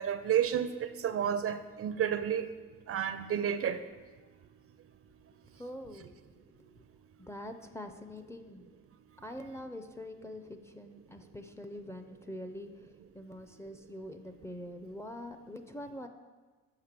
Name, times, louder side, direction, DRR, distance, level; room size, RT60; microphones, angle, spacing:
voice 1, 0.0-2.5 2.9-3.8, right 9 dB, 50° right, 11 dB, 0.5 m, -31 dB
voice 2, 5.5-6.1 6.6-6.8 7.2-8.6 9.2-16.1, left 1 dB, 10° left, 6 dB, 0.5 m, -44 dB
6.6 x 5.1 x 5.9 m, 1.3 s
cardioid pair, 90°, 30 cm